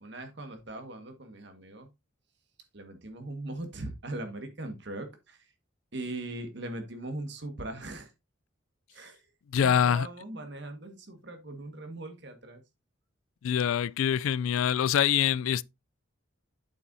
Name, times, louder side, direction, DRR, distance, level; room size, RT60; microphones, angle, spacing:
voice 1, 0.0-1.9 2.7-5.5 5.9-8.1 8.9-9.3 9.6-12.6, right 1 dB, 55° right, 1.6 m, -40 dB
voice 2, 9.5-10.1 13.4-15.6, left 9 dB, 80° left, 0.3 m, -25 dB
8.4 x 6.9 x 2.7 m
head